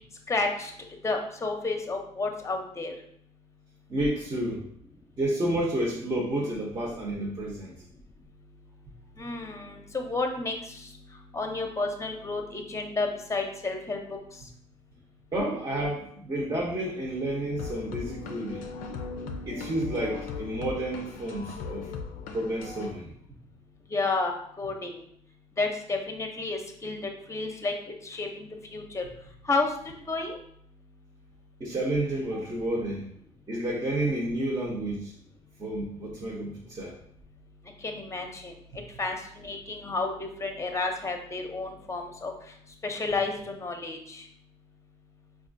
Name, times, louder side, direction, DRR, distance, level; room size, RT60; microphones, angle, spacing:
voice 1, 0.3-0.7 1.0-2.9 9.2-10.9 11.3-14.0 23.9-25.0 25.6-27.0 27.3-27.7 28.0-29.1 29.5-29.7 30.1-30.4 37.8-38.5 39.0-42.3 42.8-44.2, left 3 dB, 20° left, 4 dB, 0.7 m, -31 dB
voice 2, 3.9-4.7 5.2-7.7 15.3-18.7 19.5-21.9 22.3-23.1 31.6-33.1 33.5-35.1 35.6-36.9, right 1 dB, 35° right, -5 dB, 0.8 m, -30 dB
sound 1, 17.6-22.9, left 5 dB, 90° left, 0.4 m, -38 dB
4.2 x 2.4 x 2.6 m, 0.67 s
supercardioid pair, 60°, 14 cm